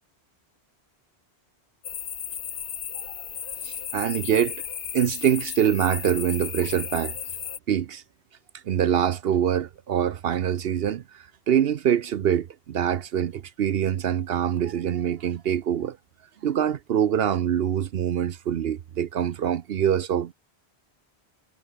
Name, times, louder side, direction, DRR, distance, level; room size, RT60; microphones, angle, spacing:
sound 1, 1.8-7.6, left 8 dB, 70° left, 1.1 m, -34 dB
voice 1, 3.6-4.7 4.9-7.1 7.7-8.0 8.5-16.0 16.4-20.3, right 9 dB, 65° right, 0.9 m, -24 dB
omnidirectional pair, 1.1 m